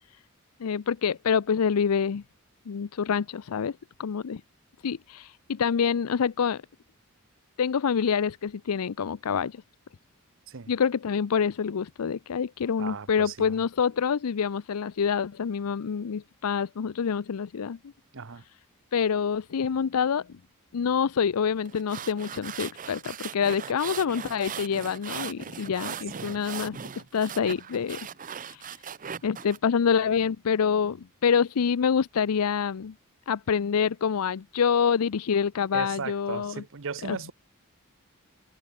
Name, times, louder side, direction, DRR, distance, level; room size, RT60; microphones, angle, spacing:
voice 1, 0.6-2.2 2.7-4.4 4.8-6.6 7.6-9.6 10.7-17.8 18.9-20.4 20.7-28.1 28.4-28.7 29.2-32.9 33.3-36.6 37.0-37.3, left 6 dB, 85° left, 0.5 m, -26 dB
voice 2, 12.8-13.6 18.1-18.4 26.1-26.4 35.7-37.3, right 5 dB, 65° right, 0.9 m, -37 dB
sound 1, 21.7-29.6, right 8 dB, 40° right, 0.7 m, -39 dB
head